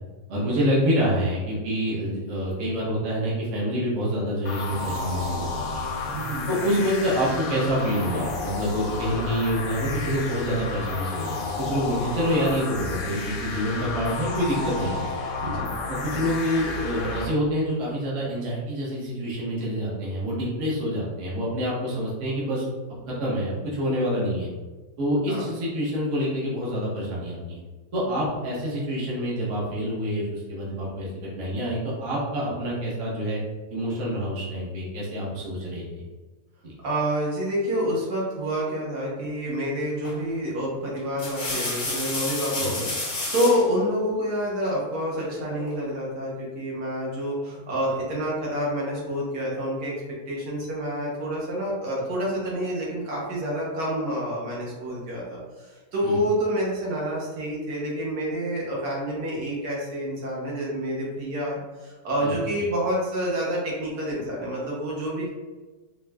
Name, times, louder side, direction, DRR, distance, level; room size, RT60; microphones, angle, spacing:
voice 1, 0.3-5.9 6.5-15.1 15.4-15.6 15.9-22.7 23.1-24.5 25.0-27.6 27.9-31.1 31.4-33.4 33.7-36.0 36.6-36.7 42.6-42.8 56.0-56.2 62.2-62.3, equal, 50° right, -6 dB, 1.1 m, -27 dB
sound 1, 4.5-17.3, left 3 dB, 70° left, 0.9 m, -32 dB
voice 2, 6.1-6.5 15.4-15.7 25.3-25.5 36.8-49.9 50.3-65.3, equal, 75° right, -5 dB, 1.4 m, -28 dB
sound 2, 40.0-40.3 41.0-43.7 45.1-45.8, left 2 dB, 45° left, 0.6 m, -31 dB
4.4 x 2.2 x 2.2 m, 1.3 s
omnidirectional pair, 1.8 m